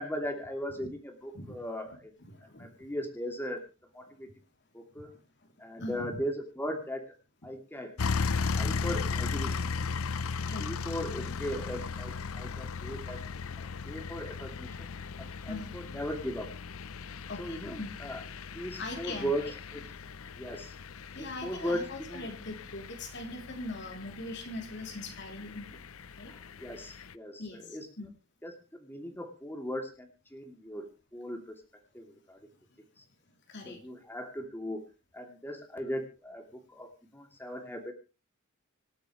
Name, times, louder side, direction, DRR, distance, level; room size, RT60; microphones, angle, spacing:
voice 1, 0.0-2.1 2.6-3.6 3.9-4.3 4.7-5.1 5.6-7.0 7.4-7.9 8.5-9.6 10.6-13.2 13.8-14.7 15.2-16.5 17.4-18.2 18.5-19.4 19.7-19.8 20.4-20.7 21.2-22.3 26.3-27.9 28.4-30.9 31.1-31.6 31.9-32.4 33.7-34.8 35.1-36.4 36.7-36.9 37.1-37.9, equal, 10° left, 3 dB, 2.8 m, -38 dB
voice 2, 2.2-2.7 5.8-6.2 10.4-10.7 15.5-15.7 17.3-17.9 18.8-19.5 21.1-25.8 26.2-26.3 27.4-27.6 28.0-28.1 33.5-33.8, left 2 dB, 55° left, 4 dB, 3.2 m, -41 dB
sound 1, 8.0-27.1, left 5 dB, 85° left, 0.6 m, -37 dB
26.0 x 9.0 x 3.2 m, 0.31 s
head